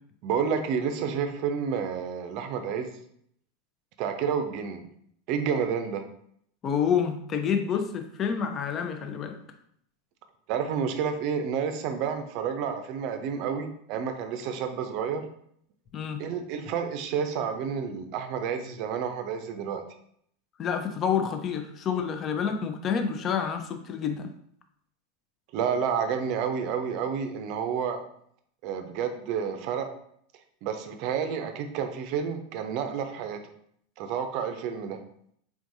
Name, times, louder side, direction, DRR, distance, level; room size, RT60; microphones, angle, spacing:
voice 1, 0.2-2.9 4.0-4.9 5.3-6.0 10.5-15.3 16.2-19.8 25.5-28.0 28.6-29.9 30.6-33.4 34.0-35.0, right 7 dB, 50° right, 7 dB, 0.6 m, -30 dB
voice 2, 6.6-9.4 15.9-16.2 20.6-24.3, left 7 dB, 35° left, 6 dB, 0.6 m, -28 dB
4.6 x 3.6 x 2.6 m, 0.68 s
figure-of-eight pair, 85°, 0 cm